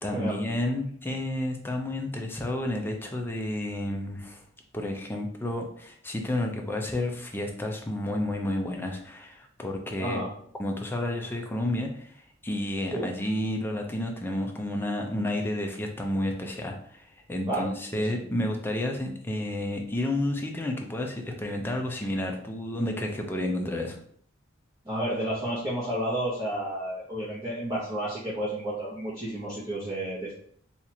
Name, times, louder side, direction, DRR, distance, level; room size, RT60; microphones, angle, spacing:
voice 1, 0.0-4.4 4.7-10.2 10.6-24.0, left 1 dB, 10° left, 2 dB, 0.4 m, -31 dB
voice 2, 17.5-18.1 24.8-30.3, right 1 dB, 15° right, -9 dB, 0.8 m, -31 dB
2.8 x 2.4 x 4.1 m, 0.62 s
head